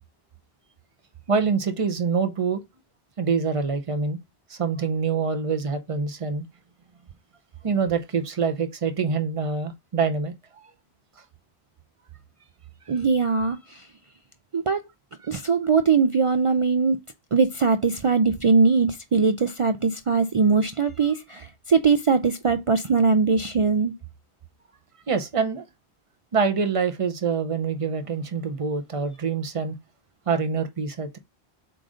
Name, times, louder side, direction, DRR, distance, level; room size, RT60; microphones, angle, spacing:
voice 1, 1.3-2.6 3.2-4.2 4.5-6.5 7.6-10.3 25.1-25.6 26.3-29.7 30.3-31.2, right 5 dB, 35° right, 0.7 m, -25 dB
voice 2, 12.9-13.8 14.5-14.8 15.3-17.0 17.3-23.9, right 5 dB, 60° right, 0.3 m, -21 dB
7.6 x 2.6 x 4.9 m
omnidirectional pair, 1.1 m